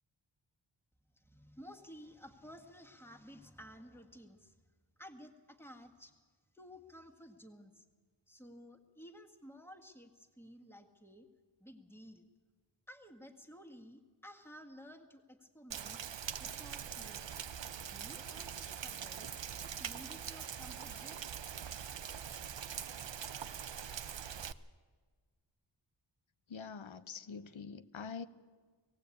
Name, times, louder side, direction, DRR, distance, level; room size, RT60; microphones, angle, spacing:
voice 1, 1.1-4.6 5.0-6.2 6.5-7.8 8.3-11.3 11.6-12.3 12.9-16.0 16.4-17.3 17.8-19.3 19.6-21.2, equal, 5° left, 1.7 m, -54 dB
Rain, 15.7-24.5, right 8 dB, 70° right, 0.7 m, -43 dB
voice 2, 26.5-28.2, left 5 dB, 85° left, 0.9 m, -45 dB
18.5 x 17.5 x 8.4 m
wide cardioid pair, 80°, 46 cm